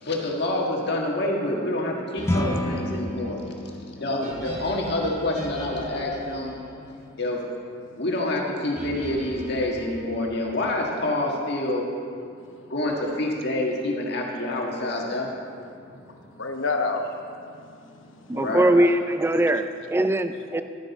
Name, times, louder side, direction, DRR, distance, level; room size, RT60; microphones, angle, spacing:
voice 1, 0.0-3.4 4.0-6.5 7.2-7.4 7.9-11.9 12.7-15.3 18.3-18.7, left 1 dB, 60° left, -1 dB, 1.6 m, -27 dB
sound 1, 2.2-11.7, left 1 dB, 15° left, 0.8 m, -35 dB
sound 2, 2.2-7.5 8.8-10.7, equal, 40° right, 1.8 m, -41 dB
voice 2, 15.8-17.6 17.9-18.3, left 3 dB, 90° left, 4 dB, 1.0 m, -31 dB
voice 3, 18.3-20.6, right 1 dB, 10° right, 10 dB, 0.3 m, -21 dB
12.5 x 10.0 x 4.1 m, 2.3 s
head